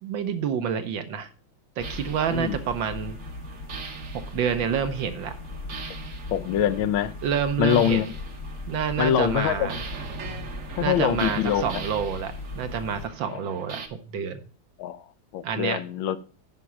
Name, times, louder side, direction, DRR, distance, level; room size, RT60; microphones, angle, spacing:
voice 1, 0.0-1.3 1.8-3.2 4.1-5.3 7.2-8.0 8.7-9.8 10.8-14.4 15.4-15.8, right 7 dB, 70° right, 9 dB, 1.5 m, -28 dB
sound 1, 1.8-13.1, left 3 dB, 55° left, 1.1 m, -38 dB
sound 2, 1.8-13.9, right 6 dB, 50° right, 1.1 m, -41 dB
voice 2, 6.3-7.1 7.6-8.1 9.0-9.8 10.8-11.6 13.3-13.4 14.8-15.0 15.3-16.2, left 10 dB, 75° left, 13 dB, 1.4 m, -24 dB
9.9 x 5.2 x 5.8 m, 0.39 s
omnidirectional pair, 2.3 m